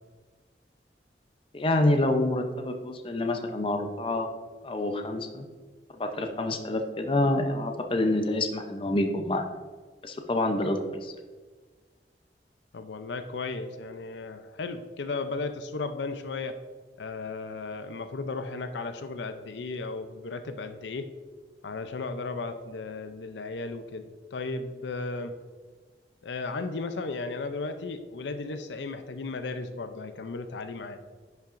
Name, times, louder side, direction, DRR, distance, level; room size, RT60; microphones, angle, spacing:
voice 1, 1.5-4.3 4.6-5.5 6.0-9.4 10.0-11.1, left 1 dB, 30° left, 5 dB, 0.6 m, -27 dB
voice 2, 12.7-16.6 17.0-21.1 21.6-25.3 26.2-31.0, left 3 dB, 85° left, 9 dB, 0.5 m, -35 dB
10.5 x 5.7 x 2.5 m, 1.4 s
head